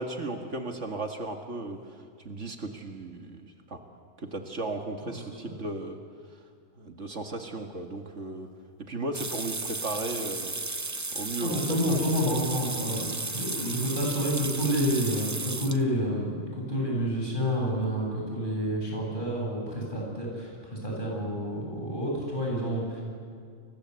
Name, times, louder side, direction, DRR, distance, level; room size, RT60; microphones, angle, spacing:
voice 1, 0.0-3.8 4.2-6.0 6.8-8.5 8.8-10.6 11.1-12.0 12.9-13.0, right 2 dB, 60° right, 4 dB, 2.1 m, -36 dB
sound 1, 9.1-15.8, right 3 dB, 20° right, 0.5 m, -34 dB
voice 2, 11.4-23.0, equal, 35° left, -2 dB, 8.3 m, -29 dB
29.5 x 22.5 x 8.2 m, 2.2 s
omnidirectional pair, 1.4 m